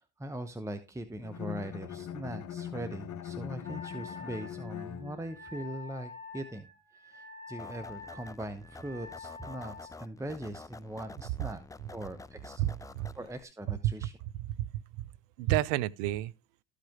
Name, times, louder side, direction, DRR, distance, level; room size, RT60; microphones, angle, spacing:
voice 1, 0.0-6.7 6.9-11.6 11.9-12.6 13.1-14.1, right 1 dB, 10° right, 1.0 m, -41 dB
Bowed string instrument, 1.2-5.5, left 10 dB, 50° left, 1.2 m, -41 dB
Wind instrument woodwind instrument, 3.6-10.0, left 4 dB, 25° right, 6.2 m, -47 dB
sound 1, 7.6-13.4, left 3 dB, 10° left, 0.4 m, -49 dB
voice 2, 12.6-13.1 13.8-14.1 14.4-15.1 15.4-16.3, right 14 dB, 75° right, 0.5 m, -31 dB
13.0 x 5.1 x 3.7 m
hypercardioid pair, 55°, 36 cm